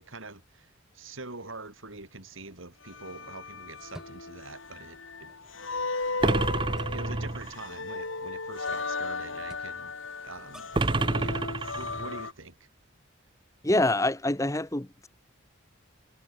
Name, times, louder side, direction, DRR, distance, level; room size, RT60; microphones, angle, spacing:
voice 1, 0.0-5.6 6.2-6.6 6.9-9.9 10.2-10.7 11.2-11.5 11.8-12.7, right 3 dB, 75° right, 4.3 m, -44 dB
sound 1, 1.8-10.9, equal, 5° right, 7.4 m, -57 dB
sound 2, 2.8-12.3, left 3 dB, 70° left, 2.8 m, -36 dB
sound 3, 6.2-7.7 10.7-12.3, right 2 dB, 25° right, 0.6 m, -28 dB
voice 2, 13.6-15.1, left 1 dB, 15° left, 1.0 m, -26 dB
head